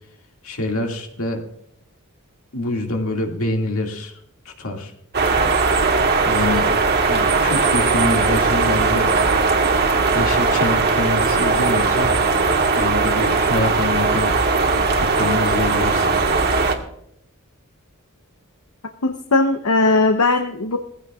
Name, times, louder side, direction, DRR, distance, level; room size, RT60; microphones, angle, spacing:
voice 1, 0.4-1.4 2.5-4.1 4.6-4.9 6.2-6.7 7.1-9.1 10.1-12.2 12.8-14.4 14.9-16.2, left 2 dB, 70° left, 2 dB, 2.3 m, -25 dB
sound 1, 5.1-16.8, right 4 dB, 50° right, 1.6 m, -18 dB
voice 2, 19.0-20.8, left 2 dB, 85° left, 6 dB, 0.9 m, -18 dB
19.0 x 15.5 x 2.4 m, 0.72 s
head